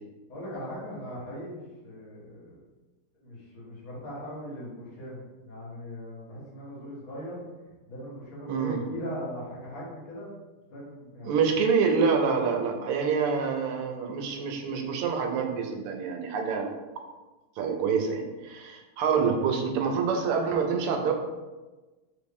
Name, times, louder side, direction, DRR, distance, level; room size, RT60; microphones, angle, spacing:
voice 1, 0.3-2.6 3.2-7.5 7.9-10.3 10.7-11.6, equal, 70° left, -7 dB, 2.3 m, -39 dB
voice 2, 11.2-16.7 17.6-21.1, right 5 dB, 85° right, 3 dB, 1.6 m, -26 dB
4.2 x 3.1 x 3.5 m, 1.2 s
omnidirectional pair, 2.4 m